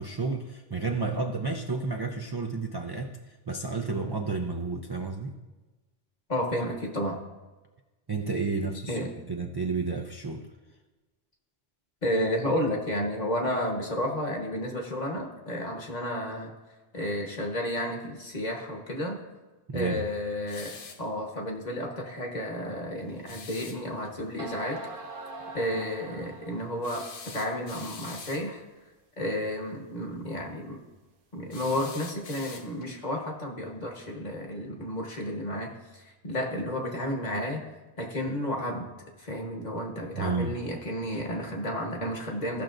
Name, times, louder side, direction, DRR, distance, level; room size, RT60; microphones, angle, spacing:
voice 1, 0.0-5.4 8.1-10.5 19.7-20.0 40.2-40.6, right 4 dB, 35° right, 2 dB, 0.4 m, -31 dB
voice 2, 6.3-7.2 8.9-9.1 12.0-16.5 16.9-19.2 19.7-20.7 21.0-24.8 25.5-28.6 29.2-30.8 31.3-37.7 38.0-38.9 39.2-42.6, left 1 dB, 40° left, 1 dB, 1.3 m, -32 dB
sound 1, 20.5-21.1 23.3-23.8 26.8-28.5 31.5-32.9, left 5 dB, 60° left, 0.8 m, -45 dB
sound 2, 23.3-23.4 24.0-24.1 24.4-26.8, right 2 dB, 60° right, 0.9 m, -41 dB
15.0 x 6.0 x 2.5 m, 1.2 s
omnidirectional pair, 1.1 m